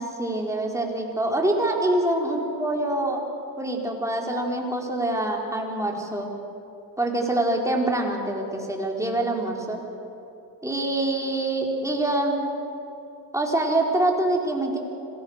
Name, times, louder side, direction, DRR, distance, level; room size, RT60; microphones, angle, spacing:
voice 1, 0.0-3.2 3.6-6.3 7.0-9.8 10.6-12.5 13.3-14.8, right 1 dB, 5° right, 0 dB, 4.8 m, -25 dB
26.5 x 18.0 x 6.8 m, 2.9 s
supercardioid pair, 75°, 45 cm